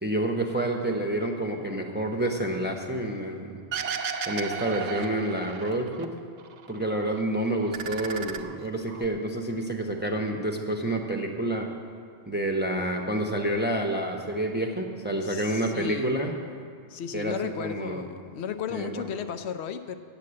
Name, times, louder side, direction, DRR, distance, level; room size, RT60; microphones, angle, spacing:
voice 1, 0.0-3.6 4.3-6.1 6.7-11.7 12.3-16.3 17.1-18.0 18.7-19.0, right 1 dB, 10° right, 2 dB, 0.7 m, -28 dB
sound 1, 3.7-6.1 6.4-7.2 7.5-9.1, right 6 dB, 90° right, 0.9 m, -34 dB
voice 2, 15.2-16.2 16.9-20.0, left 7 dB, 75° left, 9 dB, 0.8 m, -34 dB
8.2 x 7.2 x 8.6 m, 2.2 s
omnidirectional pair, 1.1 m